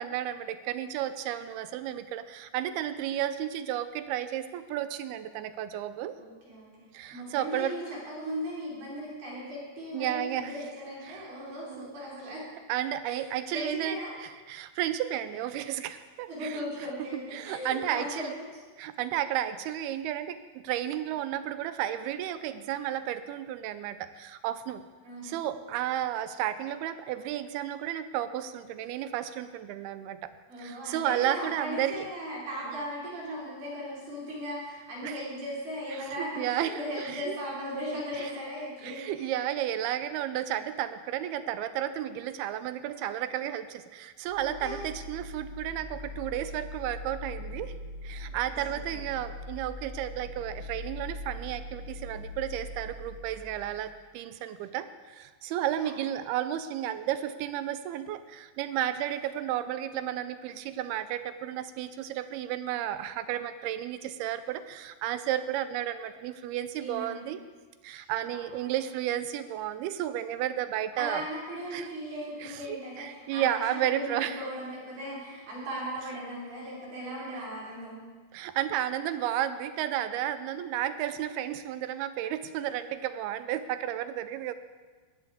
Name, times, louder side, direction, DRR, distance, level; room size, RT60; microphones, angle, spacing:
voice 1, 0.0-6.2 6.9-7.7 9.9-10.5 11.1-11.2 11.7-11.9 12.7-14.0 14.5-16.6 17.3-18.3 18.8-24.8 25.2-30.3 30.6-31.9 35.0-35.2 36.2-37.3 38.2-38.3 38.8-47.7 48.0-67.4 67.8-71.2 71.7-71.9 72.4-74.4 78.3-84.5, right 11 dB, 80° right, 12 dB, 2.4 m, -32 dB
voice 2, 6.2-12.4 13.1-14.1 16.3-18.5 25.0-25.4 30.5-39.3 44.4-44.9 48.5-49.1 55.7-56.0 66.8-67.2 68.3-68.4 68.7-68.8 70.9-78.0, equal, 65° right, -6 dB, 6.2 m, -38 dB
sound 1, 44.2-53.9, left 1 dB, 55° left, 7.5 m, -41 dB
19.5 x 14.0 x 3.6 m, 1.4 s
omnidirectional pair, 4.8 m